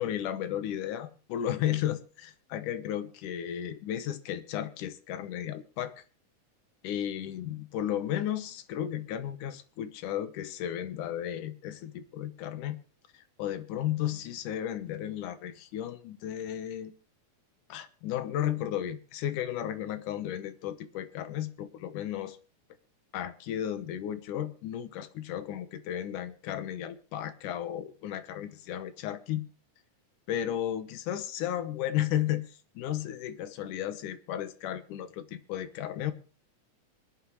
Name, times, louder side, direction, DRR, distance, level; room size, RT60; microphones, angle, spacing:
voice 1, 0.0-5.9 6.8-12.8 13.1-16.9 17.7-22.4 23.1-29.5 30.3-36.1, left 11 dB, 90° left, 2.6 m, -34 dB
24.5 x 10.0 x 3.1 m
omnidirectional pair, 3.5 m